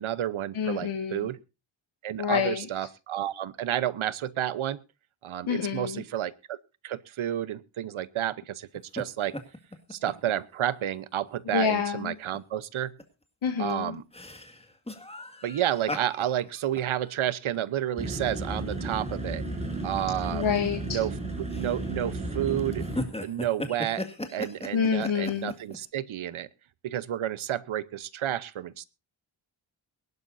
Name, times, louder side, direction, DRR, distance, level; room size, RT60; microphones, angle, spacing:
voice 1, 0.0-1.4 2.0-4.8 5.2-6.6 6.8-9.3 9.9-12.9 13.6-14.0 15.4-19.4 19.8-20.5 20.9-21.1 21.4-22.8 23.2-24.1 24.3-26.5 26.8-28.8, right 11 dB, 90° right, 18 dB, 0.9 m, -30 dB
voice 2, 0.5-1.3 2.2-2.7 5.5-6.0 11.5-12.2 13.4-14.0 20.3-21.0 24.7-25.5, left 7 dB, 85° left, 4 dB, 1.9 m, -27 dB
sound 1, 8.7-9.0 9.3-10.3 10.7-10.8 11.3-11.5 12.3-12.4 12.8-13.0 13.5-18.5 18.9-19.0 19.7-20.0 20.6-21.1 21.5-22.1 22.6-25.8, left 1 dB, 10° left, 2.0 m, -38 dB
sound 2, 18.0-23.0, right 2 dB, 15° right, 7.0 m, -33 dB
22.5 x 11.5 x 2.6 m, 0.28 s
wide cardioid pair, 90°, 47 cm